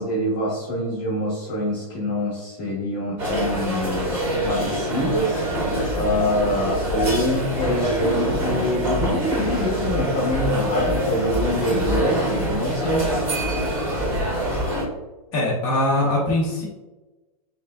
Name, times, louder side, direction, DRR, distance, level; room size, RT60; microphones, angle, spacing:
voice 1, 0.0-4.2 4.5-5.4 5.9-13.1, equal, 40° left, -8 dB, 1.3 m, -25 dB
sound 1, 3.2-14.8, equal, 10° right, 1.0 m, -25 dB
voice 2, 15.3-16.6, left 1 dB, 20° left, -6 dB, 0.8 m, -21 dB
5.9 x 2.4 x 2.2 m, 1.1 s
hypercardioid pair, 160°, 19 cm